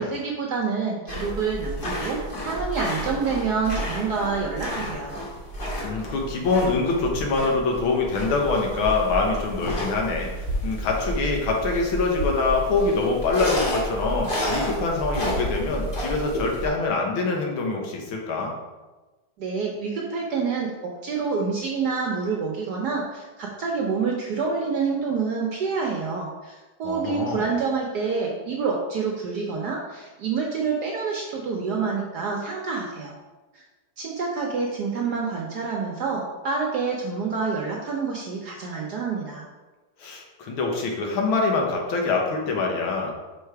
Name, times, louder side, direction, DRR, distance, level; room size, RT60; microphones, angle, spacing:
voice 1, 0.0-5.1 19.4-33.1 33.5-33.6 34.0-39.4, right 5 dB, 65° right, -1 dB, 1.1 m, -27 dB
sound 1, 1.1-16.7, equal, 35° left, 1.1 m, -31 dB
voice 2, 5.8-18.5 26.8-27.5 40.0-43.1, left 3 dB, 80° left, 1 dB, 1.8 m, -25 dB
5.6 x 4.0 x 4.6 m, 1.2 s
omnidirectional pair, 2.2 m